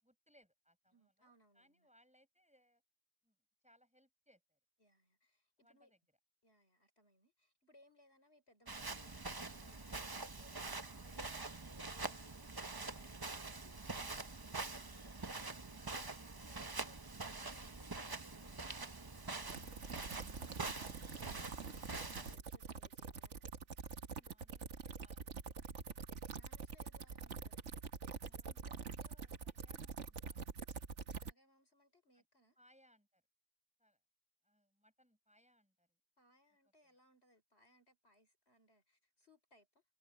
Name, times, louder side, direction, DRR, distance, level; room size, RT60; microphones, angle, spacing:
voice 1, 0.0-2.8 3.2-4.6 5.6-6.0 24.1-26.4 28.2-30.8 32.1-32.3 32.6-33.2 33.8-34.0 34.4-36.0 36.8-37.0, equal, 5° right, 7.3 m, -72 dB
voice 2, 0.9-1.9 4.8-5.9 6.4-19.7 20.8-23.6 26.2-27.7 31.2-32.6 36.2-39.8, left 1 dB, 50° left, 4.5 m, -69 dB
Walk footsteps, 8.7-22.4, right 3 dB, 20° right, 0.7 m, -45 dB
sound 1, 19.5-31.3, right 5 dB, 65° right, 1.6 m, -46 dB
omnidirectional pair, 1.3 m